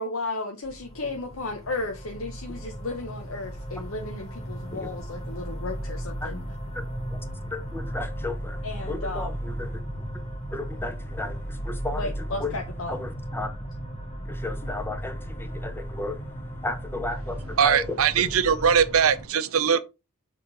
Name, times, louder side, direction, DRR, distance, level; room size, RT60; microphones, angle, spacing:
voice 1, 0.0-6.4 8.6-9.4 12.0-12.9, left 2 dB, 65° left, 0.9 m, -34 dB
sound 1, 0.6-19.3, right 1 dB, 35° left, 2.7 m, -35 dB
voice 2, 7.5-8.6 8.9-9.7 10.5-12.1 12.4-12.5 12.9-13.5 14.3-16.2 16.6-17.8, left 2 dB, 10° left, 0.8 m, -34 dB
voice 3, 17.6-19.8, right 7 dB, 75° right, 0.6 m, -21 dB
6.9 x 3.6 x 4.0 m
head